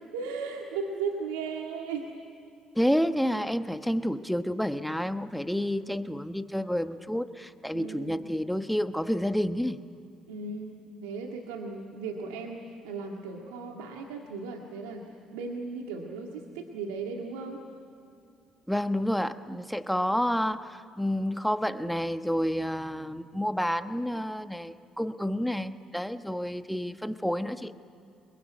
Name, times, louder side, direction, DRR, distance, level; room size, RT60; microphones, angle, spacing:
voice 1, 0.1-2.1 7.7-8.2 10.3-17.6, right 4 dB, 90° right, 1 dB, 1.9 m, -36 dB
voice 2, 2.7-9.8 18.7-27.7, equal, ahead, 9 dB, 1.2 m, -29 dB
24.5 x 22.0 x 9.3 m, 2.6 s
supercardioid pair, 65°, 0 cm